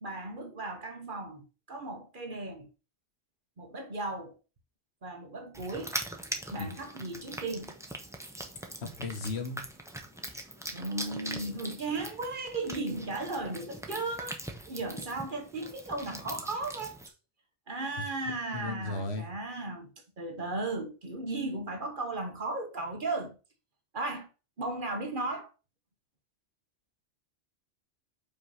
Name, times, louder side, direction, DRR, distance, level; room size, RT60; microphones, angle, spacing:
voice 1, 0.0-2.7 3.6-4.4 5.0-6.0 6.5-7.7 10.7-14.4 14.7-17.0 17.7-19.9 20.2-23.4 23.9-24.3 24.6-25.5, right 2 dB, 45° right, 1.3 m, -36 dB
sound 1, 5.5-17.1, right 1 dB, 5° right, 0.6 m, -42 dB
voice 2, 8.8-9.6 18.5-19.3, left 3 dB, 65° left, 1.3 m, -35 dB
5.4 x 3.2 x 5.6 m
omnidirectional pair, 1.2 m